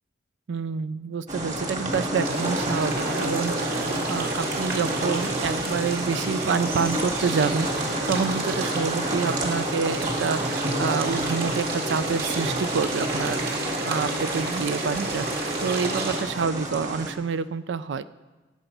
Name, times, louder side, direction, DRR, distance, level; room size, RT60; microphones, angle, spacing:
voice 1, 0.5-18.0, right 5 dB, 75° right, 14 dB, 0.4 m, -28 dB
sound 1, 1.3-17.1, right 1 dB, 40° right, 1.9 m, -30 dB
sound 2, 2.2-16.2, right 2 dB, 55° right, 2.1 m, -31 dB
18.0 x 7.9 x 5.4 m, 1.2 s
head